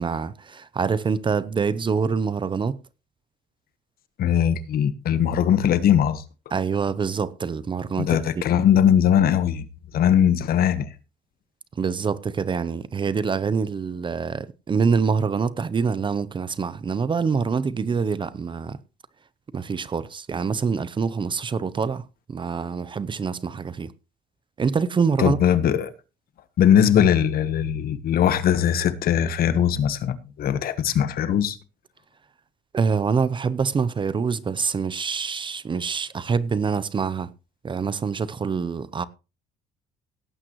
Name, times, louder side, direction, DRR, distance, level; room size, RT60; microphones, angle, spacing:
voice 1, 0.0-2.8 6.5-8.2 11.8-18.8 19.5-23.9 24.6-25.4 32.7-37.3 37.6-39.0, right 5 dB, 30° right, 0.7 m, -25 dB
voice 2, 4.2-6.2 8.0-9.6 9.9-10.9 25.2-25.9 26.6-31.6, left 9 dB, 60° left, 1.3 m, -20 dB
17.5 x 8.8 x 3.1 m
cardioid pair, 110°, 17 cm